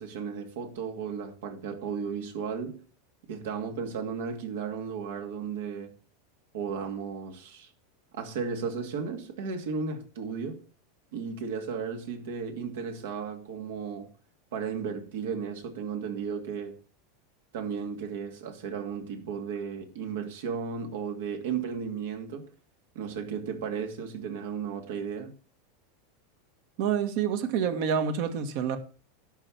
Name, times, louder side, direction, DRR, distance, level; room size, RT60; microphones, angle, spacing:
voice 1, 0.0-2.8 3.3-5.9 6.5-7.7 8.1-10.6 11.1-14.1 14.5-16.8 17.5-22.5 22.9-25.3, right 6 dB, 80° right, 2.5 m, -34 dB
voice 2, 26.8-28.8, right 7 dB, 60° right, 1.7 m, -27 dB
11.5 x 4.5 x 7.5 m
supercardioid pair, 120°, 0 cm